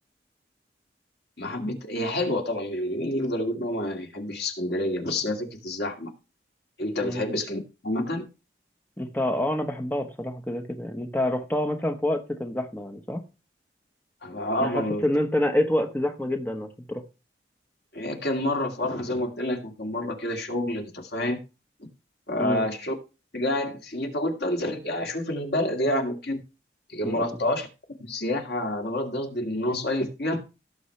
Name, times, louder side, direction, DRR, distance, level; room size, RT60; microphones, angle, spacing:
voice 1, 1.4-6.1 6.8-8.3 14.2-15.0 17.9-21.4 22.3-22.9 23.3-26.4 26.9-27.7 28.0-30.4, left 1 dB, 70° left, 2.1 m, -28 dB
voice 2, 9.0-13.2 14.6-17.0 22.4-22.6 27.0-27.4, left 1 dB, 10° left, 1.0 m, -27 dB
17.0 x 7.1 x 3.2 m
head